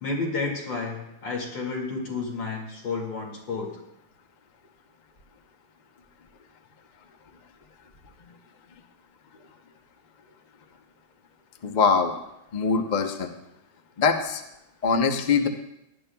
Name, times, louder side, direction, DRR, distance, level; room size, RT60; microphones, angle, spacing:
voice 1, 0.0-3.8, left 4 dB, 70° left, -2 dB, 3.0 m, -31 dB
voice 2, 11.6-12.1 12.5-13.3 14.0-14.4 14.8-15.5, left 5 dB, 50° left, 5 dB, 0.5 m, -22 dB
18.0 x 10.5 x 2.3 m, 0.86 s
omnidirectional pair, 2.0 m